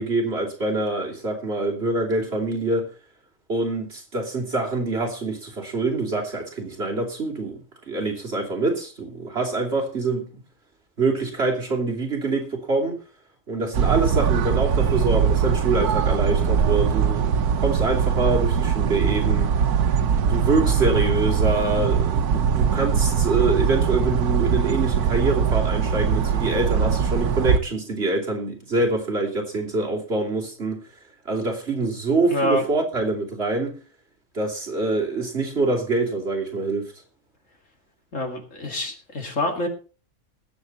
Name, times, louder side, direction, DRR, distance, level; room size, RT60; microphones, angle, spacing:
voice 1, 0.0-2.9 3.5-10.2 11.0-13.0 13.5-19.5 20.2-30.8 31.3-33.7 34.3-36.9, right 3 dB, 45° right, 3.1 m, -25 dB
sound 1, 13.7-27.6, right 7 dB, 80° right, 1.4 m, -21 dB
voice 2, 32.3-32.6 38.1-39.7, left 1 dB, 55° left, 2.6 m, -26 dB
20.0 x 7.7 x 4.1 m
omnidirectional pair, 1.6 m